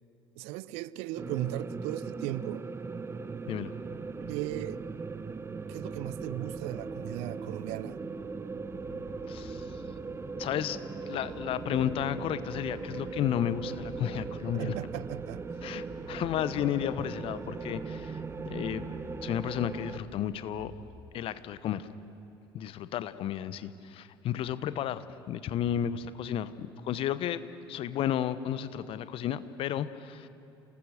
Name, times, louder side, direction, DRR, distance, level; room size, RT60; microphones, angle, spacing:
voice 1, 0.4-2.7 4.3-4.8 5.7-8.0 14.5-15.5, right 16 dB, 60° right, 0.5 m, -37 dB
sound 1, 1.2-20.0, right 4 dB, 20° right, 0.9 m, -39 dB
voice 2, 3.5-3.8 9.3-9.8 10.4-10.8 11.1-14.7 15.6-18.2 18.5-18.8 19.2-20.7 21.1-21.9 22.5-27.4 27.7-30.3, left 10 dB, 45° left, 1.0 m, -32 dB
sound 2, 7.6-20.9, equal, 85° right, 2.4 m, -52 dB
28.0 x 19.0 x 6.5 m
figure-of-eight pair, 60°, 12 cm